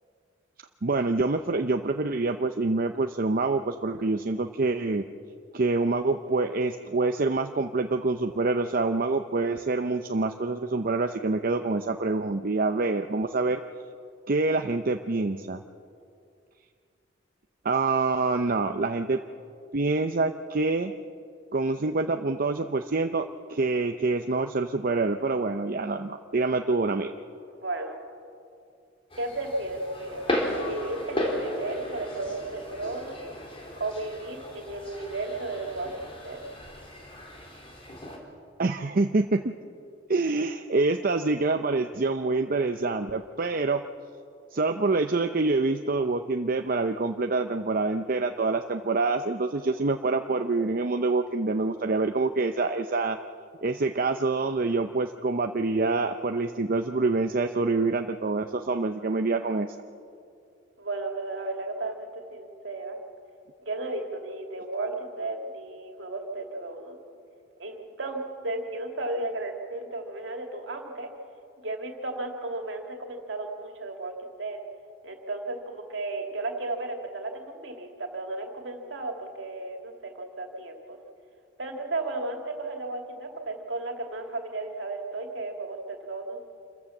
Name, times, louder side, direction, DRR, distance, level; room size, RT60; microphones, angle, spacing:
voice 1, 0.8-5.0 5.5-13.6 14.3-15.6 17.6-19.2 19.7-20.9 21.5-27.1 38.6-39.5 40.1-43.8 44.5-53.2 53.6-59.8, right 3 dB, 50° right, 6 dB, 0.7 m, -26 dB
voice 2, 27.5-28.0 29.2-33.2 33.8-36.4 60.8-63.0 63.6-67.0 67.6-71.1 71.6-74.6 75.0-81.0 81.6-86.4, right 2 dB, 70° right, 3 dB, 2.7 m, -34 dB
sound 1, 29.1-38.2, left 1 dB, 30° left, 3.5 m, -35 dB
27.0 x 14.5 x 7.2 m, 2.4 s
head